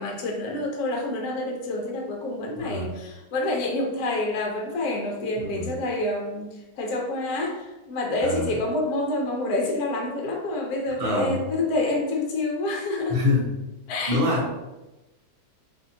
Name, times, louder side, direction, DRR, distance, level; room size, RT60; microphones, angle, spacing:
voice 1, 0.0-13.2 13.9-14.2, left 2 dB, 70° left, 1 dB, 1.1 m, -28 dB
voice 2, 2.6-2.9 5.4-5.7 8.2-8.6 11.0-11.4 13.1-13.5 14.1-14.6, left 2 dB, 55° right, -5 dB, 0.7 m, -25 dB
2.7 x 2.6 x 2.6 m, 1.0 s
omnidirectional pair, 1.8 m